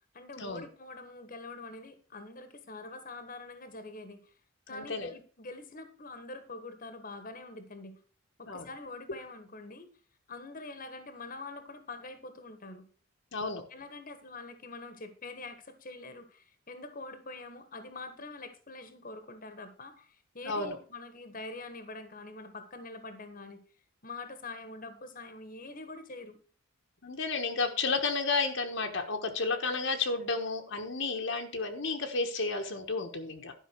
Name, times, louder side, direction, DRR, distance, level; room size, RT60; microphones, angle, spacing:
voice 1, 0.1-4.3 4.7-8.0 8.4-9.9 10.3-12.9 13.7-23.6 24.0-26.4, left 3 dB, 40° left, 9 dB, 1.3 m, -45 dB
voice 2, 4.7-5.1 8.5-8.7 13.3-13.6 20.4-20.8 27.0-33.5, left 4 dB, 60° left, 4 dB, 1.3 m, -32 dB
11.5 x 5.7 x 5.9 m, 0.39 s
head